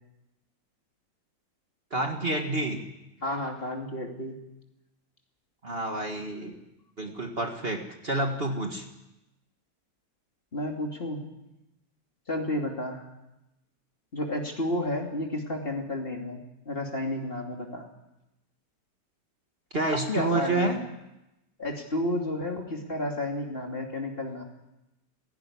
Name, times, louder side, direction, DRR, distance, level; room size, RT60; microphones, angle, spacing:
voice 1, 1.9-2.8 5.6-6.5 7.0-8.9 19.7-20.8, right 2 dB, 35° right, 3 dB, 1.9 m, -29 dB
voice 2, 3.2-4.4 10.5-11.2 12.3-13.0 14.1-17.9 19.9-20.7 21.6-24.4, left 1 dB, 30° left, 1 dB, 2.9 m, -31 dB
17.0 x 16.5 x 9.9 m, 0.94 s
omnidirectional pair, 1.9 m